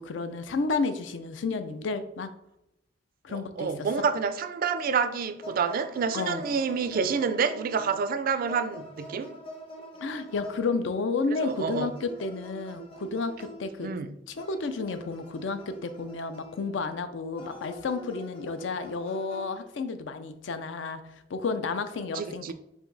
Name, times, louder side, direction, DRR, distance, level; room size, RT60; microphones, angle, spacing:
voice 1, 0.0-2.3 3.2-3.7 4.0-4.1 6.1-6.4 10.0-13.3 13.6-13.9 14.3-22.5, left 4 dB, 70° left, 0.5 m, -31 dB
voice 2, 3.3-9.3 11.4-11.9 13.8-14.2 22.1-22.5, right 6 dB, 50° right, 0.3 m, -28 dB
sound 1, 5.4-8.0 8.5-10.9 11.5-14.0 14.4-16.8 17.4-19.8, equal, 30° left, 0.8 m, -45 dB
4.9 x 2.7 x 3.9 m
head